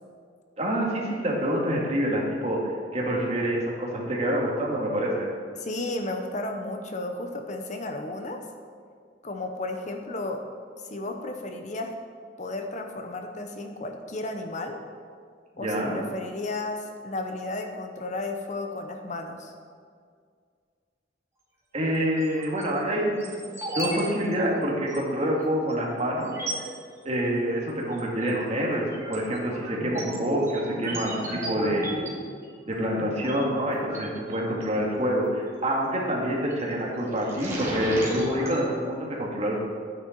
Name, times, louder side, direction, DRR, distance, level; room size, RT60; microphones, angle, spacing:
voice 1, 0.6-5.3 15.6-16.0 21.7-23.4 23.7-26.4 27.0-31.9 32.7-39.6, equal, 35° right, -3 dB, 2.2 m, -27 dB
voice 2, 5.6-8.4 9.2-10.5 10.9-12.0 12.4-14.8 15.6-19.5, left 2 dB, 40° left, 5 dB, 0.8 m, -33 dB
sound 1, 22.2-22.6 23.2-24.0 24.3-24.4 24.9-25.0 25.7-25.8 26.2-26.7 27.9-28.3 28.7-34.6 36.2-36.6 37.0-38.6, right 1 dB, 15° right, 2.6 m, -35 dB
12.5 x 9.3 x 4.6 m, 2.1 s
head